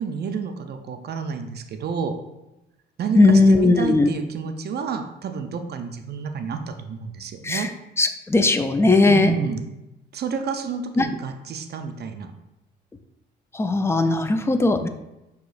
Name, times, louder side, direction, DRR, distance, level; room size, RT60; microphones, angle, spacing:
voice 1, 0.0-2.2 3.0-7.7 9.1-9.6 10.1-12.3, right 5 dB, 55° right, 6 dB, 0.5 m, -30 dB
voice 2, 3.1-4.1 7.4-7.7 8.0-9.3 11.0-11.1 13.5-14.9, left 2 dB, 15° left, 8 dB, 0.3 m, -18 dB
6.0 x 2.9 x 2.5 m, 0.93 s
cardioid pair, 90°, 20 cm